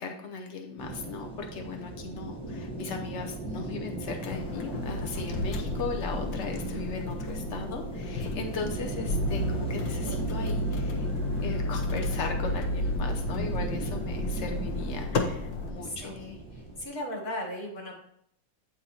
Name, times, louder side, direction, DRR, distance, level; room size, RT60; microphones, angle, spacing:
voice 1, 0.0-11.1 11.4-16.2, left 4 dB, 80° left, 3 dB, 0.6 m, -38 dB
sound 1, 0.8-16.9, right 1 dB, 5° left, 0.6 m, -37 dB
sound 2, 4.2-15.7, left 1 dB, 60° left, 1.0 m, -32 dB
voice 2, 16.0-16.4 16.8-17.9, left 1 dB, 40° left, 0 dB, 2.0 m, -36 dB
8.5 x 3.9 x 4.2 m, 0.69 s
omnidirectional pair, 2.3 m